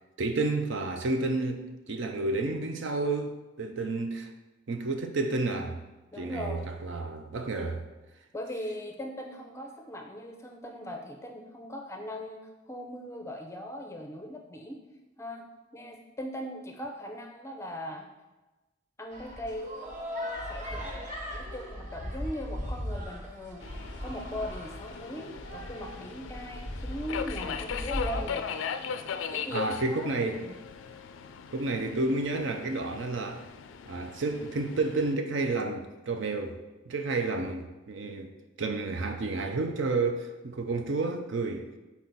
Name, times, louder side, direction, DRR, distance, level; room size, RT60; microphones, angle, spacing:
voice 1, 0.2-1.6 1.9-4.3 4.7-5.8 6.2-7.8 29.5-30.4 31.5-33.4 33.9-36.6 36.9-38.3 38.6-41.7, right 3 dB, 65° right, 5 dB, 0.6 m, -30 dB
voice 2, 6.1-6.7 8.3-14.8 15.2-15.4 15.7-18.1 19.0-19.8 20.5-20.8 21.3-23.6 24.0-28.5 29.3-30.5, left 1 dB, 15° left, 3 dB, 0.5 m, -39 dB
sound 1, 19.1-28.3, equal, 40° right, 0.9 m, -38 dB
Subway metro underground, 23.6-35.1, left 6 dB, 65° left, 0.3 m, -39 dB
6.0 x 4.2 x 4.0 m, 1.1 s
head